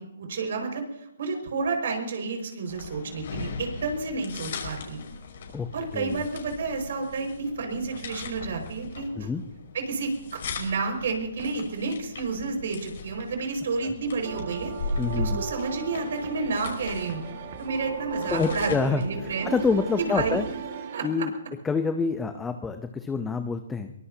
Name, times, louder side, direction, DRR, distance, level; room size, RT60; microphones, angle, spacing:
voice 1, 0.0-5.0 5.7-9.3 9.7-17.2 17.6-19.5 20.0-20.4 20.9-21.1, right 4 dB, 60° right, 3 dB, 5.5 m, -30 dB
sound 1, 2.7-20.5, left 3 dB, 55° left, 5.4 m, -38 dB
sound 2, 14.2-21.1, right 7 dB, 40° right, 1.8 m, -37 dB
voice 2, 15.0-15.4 18.3-20.4 21.0-21.3 21.6-23.9, left 4 dB, 10° left, 7 dB, 0.7 m, -27 dB
23.0 x 21.0 x 2.8 m, 0.83 s
hypercardioid pair, 160°, 0 cm